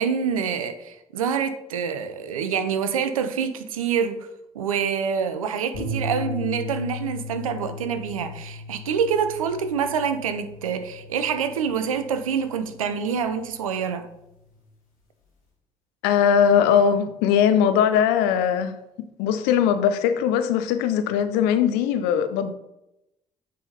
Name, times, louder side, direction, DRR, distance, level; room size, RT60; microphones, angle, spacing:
voice 1, 0.0-4.3 4.5-14.1, right 7 dB, 85° right, 0.6 m, -26 dB
sound 1, 5.7-14.1, left 3 dB, 85° left, 1.8 m, -37 dB
voice 2, 16.0-18.7 19.2-22.5, left 8 dB, 70° left, 0.6 m, -20 dB
9.2 x 4.0 x 4.0 m
figure-of-eight pair, 45°, 17 cm